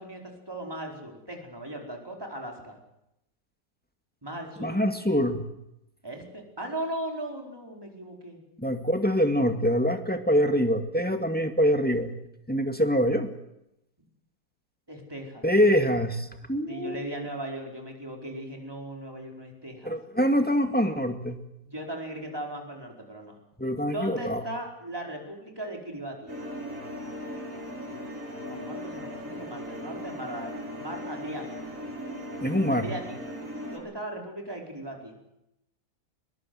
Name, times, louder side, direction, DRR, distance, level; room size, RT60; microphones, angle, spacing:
voice 1, 0.0-2.8 4.2-4.8 6.0-8.4 14.9-15.5 16.7-20.0 21.6-23.4 23.8-26.3 28.4-31.6 32.7-33.4 33.7-35.2, right 1 dB, 15° right, 1 dB, 4.8 m, -38 dB
voice 2, 4.6-5.4 8.6-12.1 12.5-13.3 15.4-17.0 19.8-21.4 23.6-24.4 32.4-32.9, equal, 5° left, 6 dB, 2.1 m, -24 dB
sound 1, 26.3-33.8, equal, 45° right, 8.6 m, -38 dB
22.0 x 21.0 x 7.9 m, 0.85 s
omnidirectional pair, 1.8 m